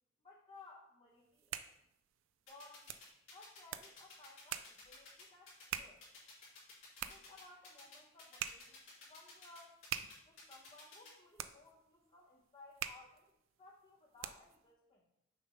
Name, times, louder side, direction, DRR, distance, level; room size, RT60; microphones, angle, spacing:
voice 1, 0.2-1.6 2.5-2.9 3.3-6.0 7.1-9.8 10.2-15.1, left 2 dB, 25° left, -4 dB, 0.8 m, -60 dB
sound 1, 1.2-14.7, right 10 dB, 70° right, 0.4 m, -48 dB
sound 2, 2.5-11.1, left 3 dB, 75° left, 2.6 m, -55 dB
6.5 x 3.4 x 5.4 m, 0.79 s
head